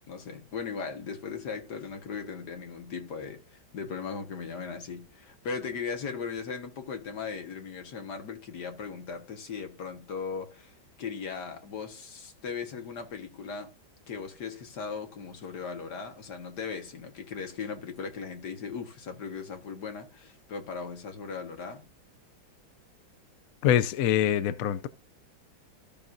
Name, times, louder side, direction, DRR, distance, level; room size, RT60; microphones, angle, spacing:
voice 1, 0.1-13.7 14.1-21.8, left 5 dB, 55° left, 2.0 m, -38 dB
voice 2, 23.6-24.9, left 10 dB, 80° left, 0.7 m, -24 dB
13.5 x 7.0 x 2.7 m
omnidirectional pair, 2.2 m